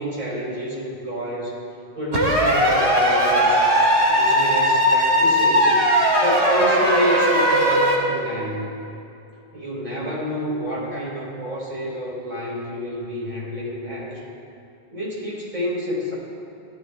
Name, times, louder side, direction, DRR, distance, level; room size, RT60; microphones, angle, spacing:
voice 1, 0.0-1.6 1.9-3.6 4.1-5.8 6.2-8.7 9.5-14.2 14.9-16.1, equal, 40° right, -6 dB, 4.4 m, -28 dB
sound 1, 2.1-8.0, equal, 85° right, 2.6 m, -18 dB
18.5 x 14.5 x 3.4 m, 2.7 s
omnidirectional pair, 1.1 m